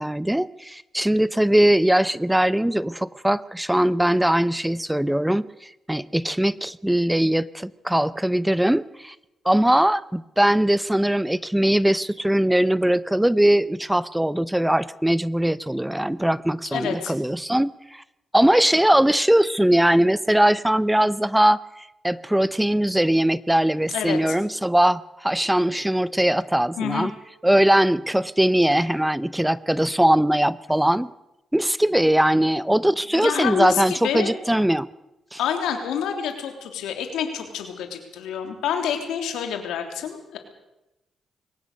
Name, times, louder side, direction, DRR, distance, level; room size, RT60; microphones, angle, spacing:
voice 1, 0.0-9.1 9.4-18.0 18.3-21.6 22.0-27.1 27.4-31.1 31.5-34.9 35.3-35.4, right 1 dB, 5° right, 17 dB, 0.7 m, -20 dB
voice 2, 16.7-17.1 23.9-24.4 26.8-27.1 33.1-34.6 35.4-40.4, left 8 dB, 85° left, 5 dB, 3.4 m, -28 dB
22.5 x 19.0 x 6.8 m, 0.93 s
supercardioid pair, 60°, 0 cm